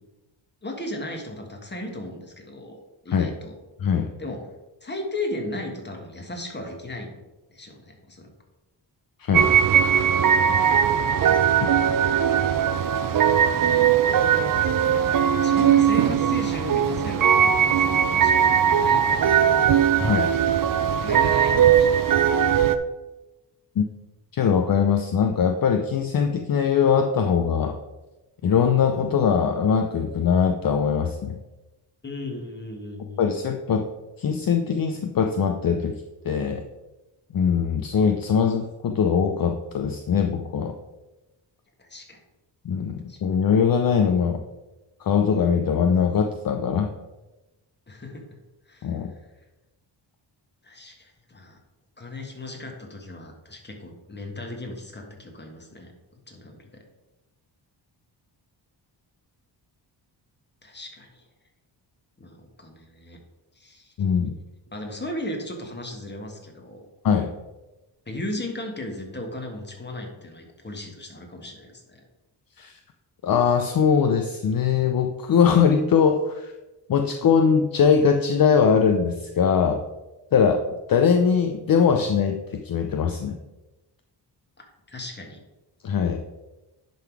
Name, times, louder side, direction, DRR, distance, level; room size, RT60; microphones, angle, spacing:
voice 1, 0.6-3.5 4.2-4.4 4.8-7.2 7.5-8.3 13.5-14.6 15.4-19.7 21.0-22.0 32.0-33.2 41.8-42.2 43.1-43.2 47.9-48.2 48.7-49.0 50.6-51.6 52.0-55.9 56.3-56.8 60.6-61.2 62.2-63.2 63.5-63.9 64.7-66.8 68.1-72.0 84.6-84.7 84.9-85.4, left 1 dB, 25° left, 2 dB, 1.7 m, -36 dB
voice 2, 3.8-4.1 9.2-9.5 20.0-20.3 23.8-23.9 24.3-27.8 28.4-31.4 33.2-33.9 34.2-36.6 37.3-40.7 42.6-44.4 45.0-46.9 48.8-49.1 64.0-64.4 67.0-67.3 72.6-72.7 73.2-76.5 76.9-79.8 80.3-80.6 80.9-83.4 85.8-86.2, left 6 dB, 50° left, 5 dB, 0.6 m, -21 dB
sound 1, 9.3-22.7, right 8 dB, 50° right, 0.5 m, -19 dB
10.5 x 3.9 x 4.7 m, 1.1 s
cardioid pair, 95°, 44 cm